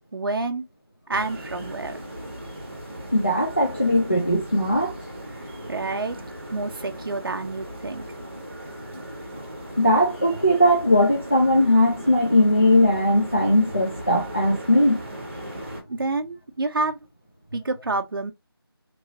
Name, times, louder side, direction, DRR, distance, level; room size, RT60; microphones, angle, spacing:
voice 1, 0.1-0.6 1.1-2.0 5.7-6.2 6.5-8.0 15.9-17.0 17.5-18.3, right 3 dB, 60° right, 0.5 m, -28 dB
sound 1, 1.1-15.8, equal, 30° right, 1.1 m, -38 dB
voice 2, 3.1-5.0 9.8-15.0, left 1 dB, 30° left, 0.4 m, -19 dB
2.9 x 2.6 x 2.7 m
figure-of-eight pair, 175°, 13 cm